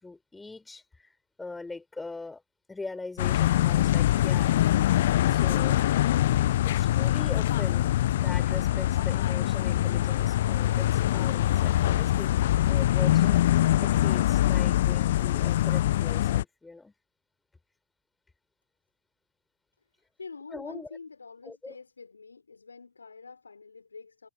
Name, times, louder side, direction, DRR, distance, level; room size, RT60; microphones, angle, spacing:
voice 1, 0.0-1.1 1.4-2.4 2.7-4.6 5.3-5.9 6.6-13.5 13.8-16.9 20.5-20.9 21.4-21.8, left 3 dB, 10° left, 5.4 m, -41 dB
sound 1, 3.2-16.4, left 13 dB, 65° left, 1.0 m, -24 dB
voice 2, 20.2-24.3, left 4 dB, 80° left, 5.5 m, -46 dB
figure-of-eight pair, 80°, 0 cm